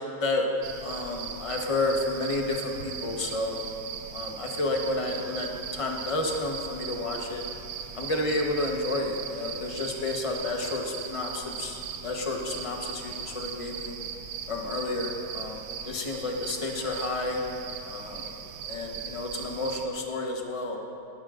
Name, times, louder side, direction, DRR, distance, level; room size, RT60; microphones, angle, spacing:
sound 1, 0.6-19.9, right 7 dB, 75° right, 1.3 m, -39 dB
voice 1, 0.8-3.6 4.1-7.4 7.9-14.0 14.5-17.4 17.8-18.3 18.7-20.8, left 2 dB, 25° left, 1 dB, 0.8 m, -31 dB
17.5 x 13.5 x 2.5 m, 2.8 s
omnidirectional pair, 1.9 m